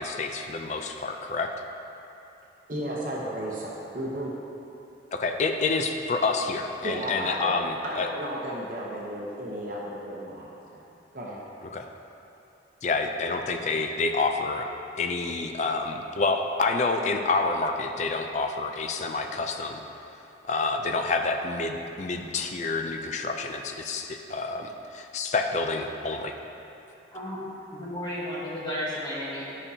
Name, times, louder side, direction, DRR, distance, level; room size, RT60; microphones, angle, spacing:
voice 1, 0.0-1.5 5.1-8.1 11.7-11.9 12.8-14.7 15.0-19.8 20.5-26.3, left 3 dB, 40° left, 5 dB, 0.4 m, -28 dB
voice 2, 2.7-4.3 6.8-7.5 7.8-10.8 11.1-11.4, right 1 dB, 50° right, -4 dB, 0.8 m, -34 dB
voice 3, 27.7-29.7, equal, 25° left, -7 dB, 1.3 m, -33 dB
9.6 x 5.2 x 2.8 m, 2.8 s
head